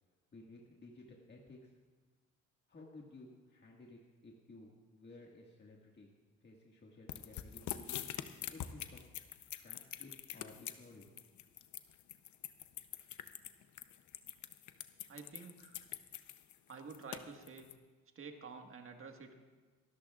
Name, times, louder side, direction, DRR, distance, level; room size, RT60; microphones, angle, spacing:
voice 1, 0.3-1.8 2.7-6.1 6.4-8.0 8.2-9.1 9.6-11.1, left 2 dB, 35° left, -2 dB, 1.8 m, -56 dB
sound 1, 7.1-17.7, left 11 dB, 70° left, 0.8 m, -45 dB
voice 2, 15.1-15.8 16.7-17.7 18.1-19.4, right 4 dB, 45° right, 4 dB, 1.6 m, -50 dB
25.5 x 13.0 x 2.4 m, 1.4 s
cardioid pair, 90°, 30 cm